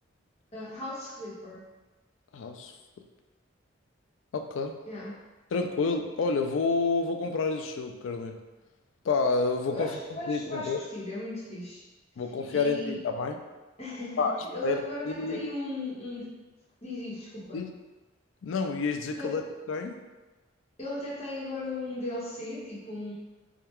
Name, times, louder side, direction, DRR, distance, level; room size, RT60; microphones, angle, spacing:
voice 1, 0.5-1.6 4.9-5.2 9.7-11.9 12.5-13.0 13.8-16.3 16.8-17.6 19.2-19.4 20.8-23.1, left 2 dB, 35° left, -6 dB, 1.0 m, -37 dB
voice 2, 2.3-2.7 4.3-4.8 5.5-8.4 9.0-10.0 10.3-10.8 12.2-13.4 14.2-14.4 14.6-15.5 17.5-17.7 18.4-20.0, left 4 dB, 75° left, 5 dB, 0.4 m, -29 dB
3.6 x 2.3 x 4.3 m, 1.2 s
head